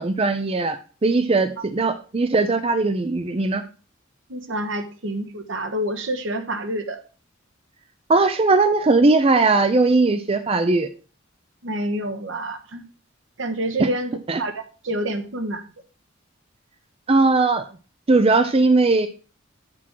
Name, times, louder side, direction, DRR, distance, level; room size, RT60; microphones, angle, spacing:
voice 1, 0.0-3.6 8.1-10.9 13.8-13.9 14.3-14.4 17.1-17.6 18.1-19.1, right 3 dB, 30° right, 8 dB, 0.5 m, -19 dB
voice 2, 4.3-7.0 11.6-12.8 13.4-15.6, right 1 dB, 70° right, 7 dB, 1.2 m, -28 dB
7.3 x 6.1 x 4.5 m, 0.37 s
head